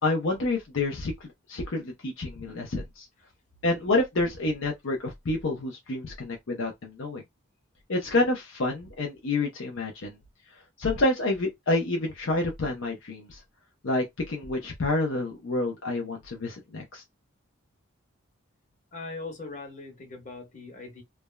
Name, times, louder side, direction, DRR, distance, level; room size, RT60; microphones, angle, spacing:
voice 1, 0.0-3.1 3.6-7.2 7.9-10.2 10.5-13.4 13.8-17.0, left 2 dB, 70° left, 0.6 m, -28 dB
voice 2, 18.9-21.0, left 3 dB, 35° left, 1.2 m, -40 dB
3.3 x 2.0 x 2.2 m
head